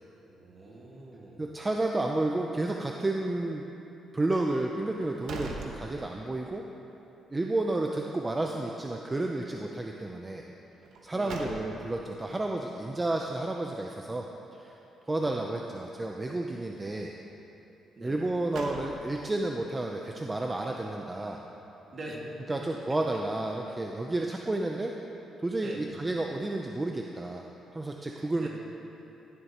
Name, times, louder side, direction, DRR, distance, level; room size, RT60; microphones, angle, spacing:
voice 1, 0.2-1.5 11.1-11.5 15.1-15.4 18.0-18.3 21.9-22.2 22.5-22.6 25.6-26.0 28.4-28.5, right 2 dB, 45° right, -2 dB, 2.1 m, -44 dB
voice 2, 1.4-3.7 4.1-6.7 7.3-10.5 11.0-14.3 14.6-14.8 15.1-17.1 18.0-21.4 22.5-24.9 25.4-27.4 27.7-28.5, right 2 dB, 20° right, 1 dB, 0.6 m, -31 dB
sound 1, 4.9-6.5 6.9-7.0 10.8-12.1 18.1-19.4, right 3 dB, 75° right, 1.0 m, -41 dB
17.0 x 7.9 x 3.0 m, 3.0 s
cardioid pair, 90°, 0 cm